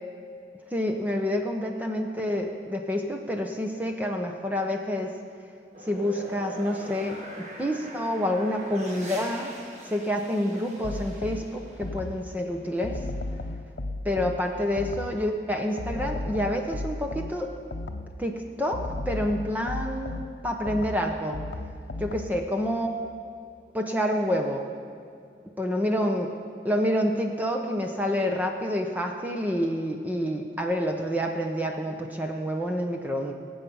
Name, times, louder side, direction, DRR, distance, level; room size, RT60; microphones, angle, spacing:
voice 1, 0.7-5.1 5.8-9.5 9.8-13.0 14.0-17.5 18.2-20.1 20.4-21.4 22.0-22.9 23.7-24.7 25.6-26.4 26.6-33.3, equal, 10° right, 2 dB, 0.8 m, -28 dB
sound 1, 5.7-13.5, equal, 40° right, 1.9 m, -43 dB
sound 2, 10.8-12.4 12.8-15.3 15.8-18.3 18.7-22.5, left 2 dB, 80° left, 0.7 m, -35 dB
19.0 x 8.5 x 5.5 m, 2.4 s
head